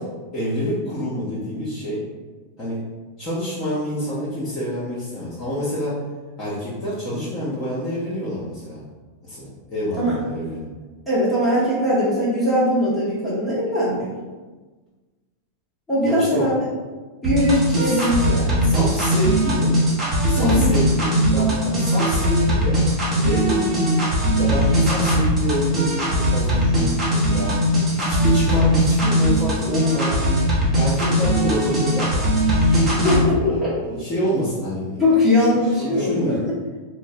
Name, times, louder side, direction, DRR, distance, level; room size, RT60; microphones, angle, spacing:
voice 1, 0.3-2.0 2.6-2.8 3.2-6.0 6.4-8.8 9.2-10.7 16.0-16.5 17.8-18.0 18.6-19.8 20.3-22.8 23.2-30.4 30.8-32.2 32.7-35.5 35.8-36.4, equal, 30° left, -9 dB, 0.8 m, -27 dB
voice 2, 11.1-14.2 15.9-16.7 17.2-18.7 20.4-20.7 33.0-33.7 35.0-36.3, left 1 dB, 5° left, -10 dB, 1.0 m, -20 dB
sound 1, 17.2-33.2, equal, 20° right, 1.0 m, -20 dB
3.8 x 2.1 x 2.6 m, 1.3 s
figure-of-eight pair, 90°, 0 cm